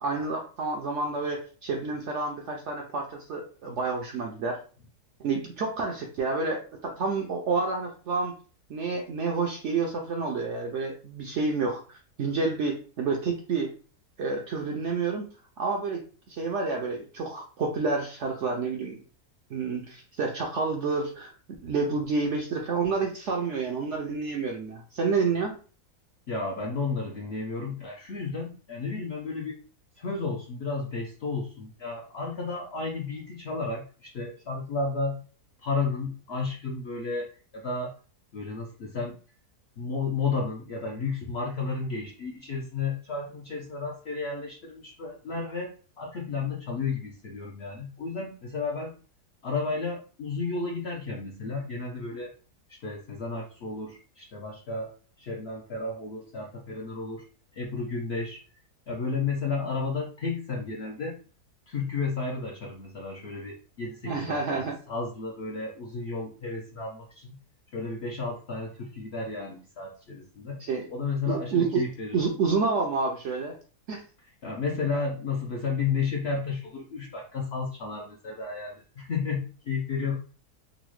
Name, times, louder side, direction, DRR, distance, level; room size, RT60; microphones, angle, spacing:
voice 1, 0.0-4.6 5.2-8.3 8.7-11.8 12.2-13.7 14.2-15.3 15.6-19.0 19.5-21.3 21.6-25.6 64.0-64.8 70.6-70.9 71.3-71.8 72.1-73.6 73.9-74.0, right 4 dB, 70° right, 1 dB, 0.7 m, -29 dB
voice 2, 26.3-29.6 30.0-35.2 35.6-38.0 38.3-39.2 39.8-48.9 49.4-52.3 52.7-57.3 57.5-58.4 58.9-61.2 61.7-67.4 67.7-70.6 70.9-72.2 74.4-80.2, left 4 dB, 70° left, -1 dB, 0.6 m, -32 dB
3.8 x 2.0 x 3.0 m, 0.38 s
omnidirectional pair, 1.7 m